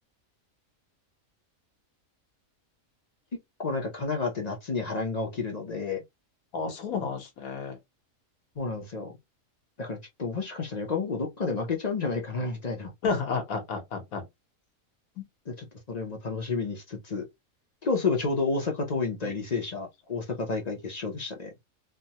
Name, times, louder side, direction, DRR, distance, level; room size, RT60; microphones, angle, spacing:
voice 1, 3.6-6.0 8.6-9.2 9.8-12.9 15.5-17.3 17.8-21.5, left 4 dB, 45° left, 0.5 m, -30 dB
voice 2, 6.5-7.8 13.0-14.2 19.2-19.3, left 5 dB, 80° left, 1.4 m, -31 dB
3.3 x 2.1 x 2.8 m
omnidirectional pair, 1.5 m